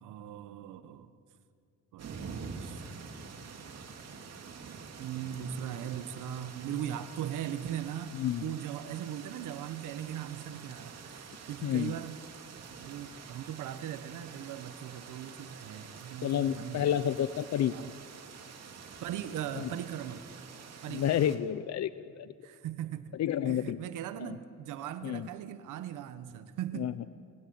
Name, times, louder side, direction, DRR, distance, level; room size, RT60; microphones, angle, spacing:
voice 1, 0.0-1.1 1.9-2.8 5.0-12.2 12.8-17.0 17.7-17.9 19.0-20.3 20.8-21.2 22.4-23.2 23.5-27.0, right 10 dB, 90° right, 11 dB, 1.2 m, -39 dB
sound 1, 2.0-21.4, right 5 dB, 55° right, 2.7 m, -47 dB
voice 2, 8.1-8.5 11.6-11.9 16.2-17.7 19.6-19.7 20.9-22.3 23.2-23.8 24.2-24.4 25.0-25.3 26.8-27.1, left 10 dB, 60° left, 15 dB, 0.7 m, -30 dB
28.5 x 16.5 x 8.8 m, 2.3 s
cardioid pair, 90°, 30 cm